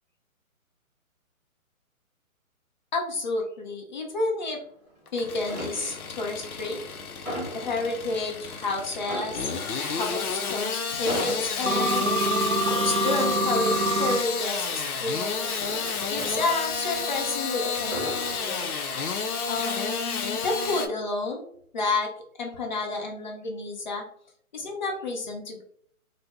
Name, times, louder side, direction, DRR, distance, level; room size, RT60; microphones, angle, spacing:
voice 1, 2.9-4.6 5.1-6.8 7.5-9.5 9.9-12.1 12.7-15.5 16.0-18.1 18.4-18.7 19.5-22.1 22.4-24.0 24.5-25.6, left 3 dB, 35° left, 1 dB, 0.5 m, -30 dB
sound 1, 4.4-5.0 5.4-6.2 6.6-8.3 8.6-8.7 9.0-17.3 17.7-19.2 19.5-19.8, right 1 dB, 5° right, 0.7 m, -39 dB
Engine starting / Sawing, 5.1-20.9, left 5 dB, 85° left, 0.6 m, -31 dB
sound 2, 11.7-14.2, right 1 dB, 65° right, 0.7 m, -25 dB
2.6 x 2.1 x 3.3 m, 0.62 s
hypercardioid pair, 145°, 43 cm